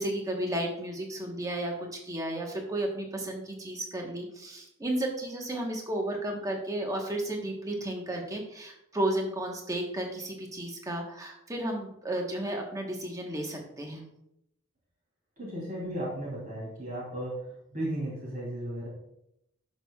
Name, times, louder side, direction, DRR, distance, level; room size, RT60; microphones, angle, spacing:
voice 1, 0.0-14.0, right 1 dB, 15° right, 1 dB, 1.2 m, -33 dB
voice 2, 15.4-17.3 17.7-18.9, right 1 dB, 40° right, -6 dB, 3.1 m, -35 dB
11.5 x 6.3 x 2.3 m, 0.80 s
head